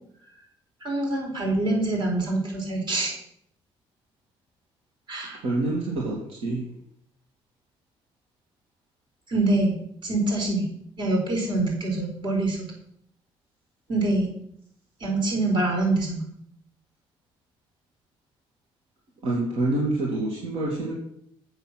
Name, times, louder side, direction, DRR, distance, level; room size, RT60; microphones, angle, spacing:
voice 1, 0.8-3.1 5.1-5.4 9.3-9.8 10.0-10.7 11.0-12.6 13.9-14.3 15.0-16.2, right 2 dB, 50° right, 0 dB, 4.2 m, -25 dB
voice 2, 5.3-6.6 19.2-20.9, right 2 dB, 70° right, -2 dB, 2.4 m, -27 dB
8.2 x 6.7 x 6.1 m, 0.71 s
cardioid pair, 90°, 10 cm